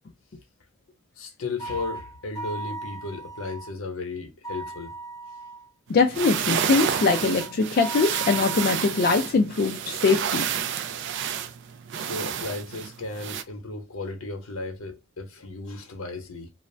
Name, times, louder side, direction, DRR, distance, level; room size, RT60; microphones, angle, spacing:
voice 1, 1.2-4.9 11.0-11.4 11.9-16.5, left 3 dB, 85° left, 0.8 m, -35 dB
sound 1, 1.6-3.7 4.4-5.7 7.0-9.2, right 3 dB, 20° left, 0.7 m, -38 dB
voice 2, 5.9-10.5, left 4 dB, 45° left, 0.3 m, -22 dB
sound 2, 6.0-13.4, right 8 dB, 60° right, 0.3 m, -30 dB
2.4 x 2.1 x 3.2 m
head